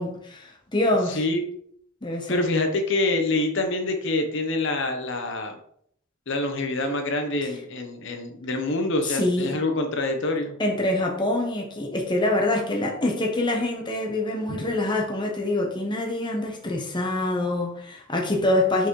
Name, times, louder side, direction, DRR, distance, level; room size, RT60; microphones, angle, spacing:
voice 1, 0.0-1.2 2.0-2.6 9.0-9.5 10.6-18.9, left 1 dB, 20° left, 1.0 m, -25 dB
voice 2, 1.1-1.4 2.3-5.6 6.3-10.6 14.5-14.6, left 2 dB, 60° left, 0.9 m, -26 dB
5.9 x 5.8 x 3.1 m
head